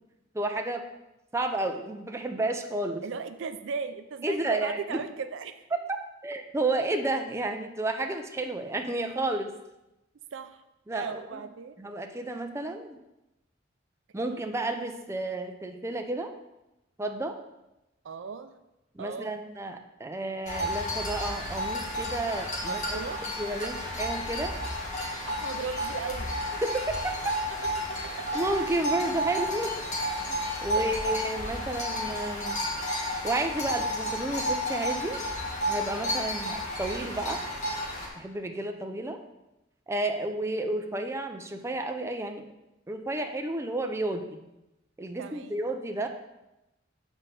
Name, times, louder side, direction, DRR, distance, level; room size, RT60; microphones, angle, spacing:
voice 1, 0.3-0.8 1.3-3.0 4.2-5.0 5.7-5.9 6.2-9.5 10.9-11.4 11.8-13.0 14.1-16.3 17.0-17.4 18.9-23.1 23.4-24.6 26.6-27.4 28.3-29.7 30.3-32.6 33.2-35.2 35.7-37.4 38.2-39.2 39.9-42.4 42.9-44.2 45.0-46.1, right 2 dB, 15° right, 5 dB, 0.5 m, -31 dB
voice 2, 3.0-5.6 10.3-10.6 10.9-11.8 14.1-14.4 18.0-18.5 19.0-19.3 22.6-23.7 25.3-26.6 27.6-27.7 28.2-28.3 30.7-31.2 36.0-36.3 39.1-39.2 45.2-45.6, right 5 dB, 70° right, 10 dB, 0.4 m, -37 dB
sound 1, 20.4-38.1, equal, 40° left, 1.6 m, -32 dB
7.1 x 4.1 x 5.5 m, 0.95 s
head